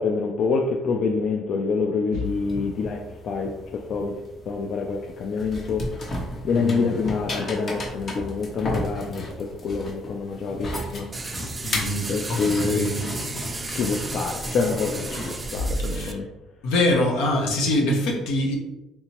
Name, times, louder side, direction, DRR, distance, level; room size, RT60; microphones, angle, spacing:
voice 1, 0.0-4.2 4.5-5.9 6.4-11.1 11.4-11.5 12.1-12.9 13.7-16.3, left 4 dB, 55° left, 1 dB, 0.3 m, -26 dB
sound 1, 2.2-15.6, left 1 dB, 40° left, 0.8 m, -34 dB
voice 2, 6.5-6.9 11.6-13.1 15.8-16.2 16.6-18.6, left 1 dB, 80° left, 1 dB, 0.8 m, -24 dB
sound 2, 11.1-16.1, right 3 dB, 20° right, 0.4 m, -34 dB
3.4 x 2.8 x 2.8 m, 1.0 s
cardioid pair, 100°, 0 cm